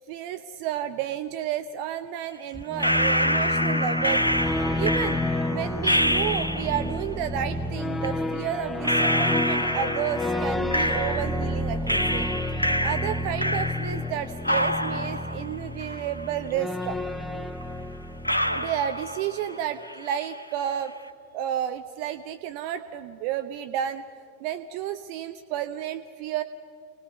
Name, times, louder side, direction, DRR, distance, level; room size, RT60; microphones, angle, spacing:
voice 1, 0.1-4.2 4.8-5.2 5.5-12.3 12.8-17.0 18.5-20.9 21.3-24.0 24.4-26.4, right 10 dB, 45° right, 9 dB, 0.8 m, -31 dB
sound 1, 2.5-19.2, left 1 dB, 5° left, 0.6 m, -30 dB
sound 2, 2.8-6.9 8.0-8.1 8.8-11.5 11.9-14.1 14.4-16.5 16.8-16.9 17.6-17.7 18.2-19.6 19.8-20.4, equal, 85° left, 0.9 m, -27 dB
27.5 x 20.0 x 6.9 m, 2.2 s
figure-of-eight pair, 90°, 0 cm